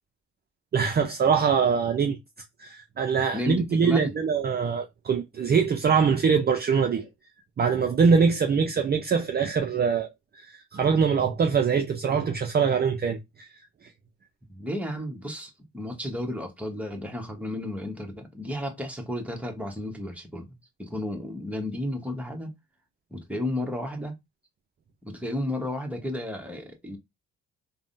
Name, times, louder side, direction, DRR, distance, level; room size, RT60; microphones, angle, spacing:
voice 1, 0.7-2.2 2.6-7.1 7.6-13.5, right 6 dB, 35° right, 0.5 m, -23 dB
voice 2, 3.3-4.1 14.5-22.5 23.1-24.1 25.0-27.0, left 1 dB, 5° right, 1.0 m, -33 dB
3.4 x 2.1 x 2.6 m
cardioid pair, 90°, 30 cm